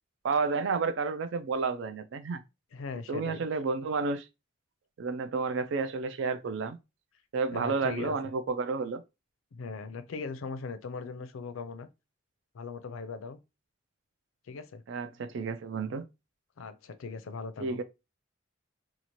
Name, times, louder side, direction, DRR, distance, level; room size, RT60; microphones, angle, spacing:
voice 1, 0.2-2.4 3.1-4.2 5.0-6.8 7.3-9.0 14.9-16.0 17.6-17.8, right 4 dB, 60° right, 0.4 m, -31 dB
voice 2, 2.7-3.4 7.5-8.2 9.5-11.9 12.5-13.4 14.5-14.8 16.6-17.8, left 4 dB, 80° left, 0.4 m, -39 dB
2.7 x 2.4 x 3.0 m
head